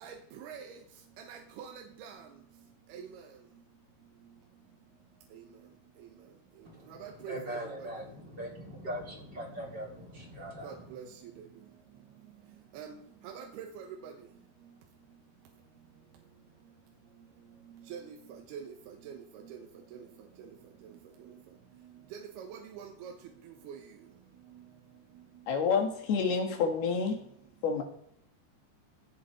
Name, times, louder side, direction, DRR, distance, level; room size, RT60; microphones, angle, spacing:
voice 1, 0.0-0.8 1.2-2.3 2.9-3.2 5.3-5.4 6.9-7.9 10.6-11.1 12.7-13.0 13.2-14.1 17.9-19.2 19.5-19.6 19.9-20.0 22.1-23.1 23.7-23.8, right 7 dB, 70° right, 3 dB, 2.7 m, -45 dB
voice 2, 6.6-10.8, right 1 dB, 30° right, -1 dB, 2.5 m, -41 dB
voice 3, 25.5-27.2 27.6-27.8, left 5 dB, 60° left, 3 dB, 3.7 m, -28 dB
16.5 x 6.4 x 5.1 m, 0.71 s
omnidirectional pair, 5.4 m